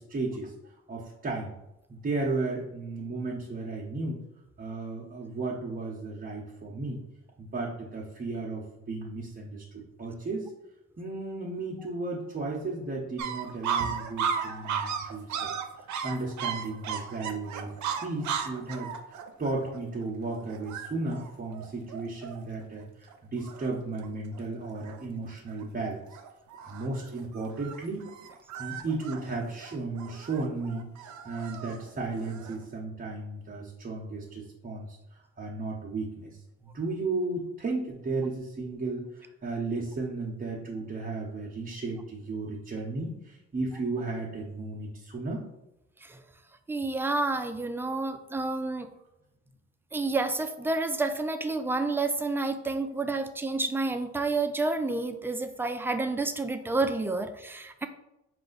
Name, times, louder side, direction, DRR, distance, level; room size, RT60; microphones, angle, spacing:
voice 1, 0.0-1.5 1.9-4.2 4.6-7.0 7.4-10.5 11.0-15.5 15.8-17.7 18.0-26.2 26.7-28.1 28.6-30.9 31.2-45.4, right 3 dB, 30° right, -4 dB, 0.8 m, -34 dB
sound 1, 13.2-22.6 23.1-23.2 23.4-24.1 24.3-25.0 25.5-25.8 26.1-32.6, right 7 dB, 70° right, 0.6 m, -36 dB
voice 2, 46.7-48.9 49.9-57.9, right 3 dB, 10° right, 8 dB, 0.3 m, -29 dB
4.7 x 2.5 x 3.9 m, 0.92 s
cardioid pair, 90°, 30 cm